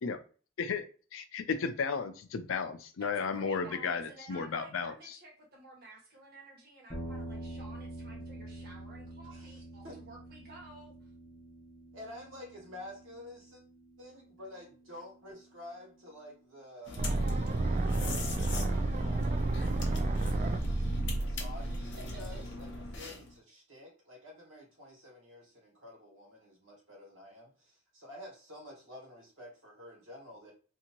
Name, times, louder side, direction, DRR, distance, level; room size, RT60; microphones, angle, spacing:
voice 1, 1.1-5.2, left 5 dB, 90° left, 9 dB, 0.5 m, -34 dB
voice 2, 3.0-11.1 21.6-21.7 22.0-22.4, right 2 dB, 55° right, -2 dB, 1.4 m, -52 dB
sound 1, 6.9-15.2, right 1 dB, 15° left, 0.8 m, -46 dB
voice 3, 9.3-10.0 11.9-13.6 14.0-17.4 18.3-30.5, left 1 dB, 80° right, -2 dB, 1.6 m, -50 dB
sound 2, 16.9-23.4, left 3 dB, 65° left, 0.8 m, -42 dB
sound 3, 17.0-23.0, right 2 dB, 40° right, 0.3 m, -31 dB
2.8 x 2.6 x 2.9 m, 0.39 s
head